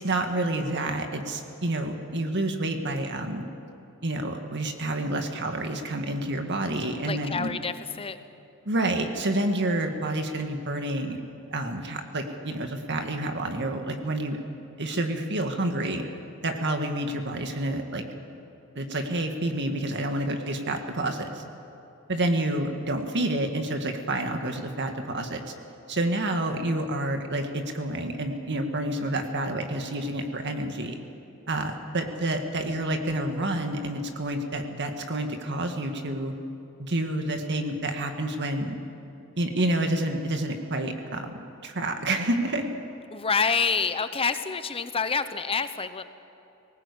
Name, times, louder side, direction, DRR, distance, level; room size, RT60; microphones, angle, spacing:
voice 1, 0.0-3.5 4.0-7.5 8.7-11.2 11.5-14.4 14.8-16.0 16.4-18.0 18.8-21.4 22.1-25.4 25.9-31.0 31.5-36.3 36.8-38.8 39.4-41.3 41.6-42.7, right 1 dB, 55° right, 5 dB, 1.8 m, -29 dB
voice 2, 7.1-8.2 43.1-46.0, left 5 dB, 25° left, 11 dB, 0.8 m, -27 dB
20.0 x 18.5 x 8.4 m, 2.8 s
head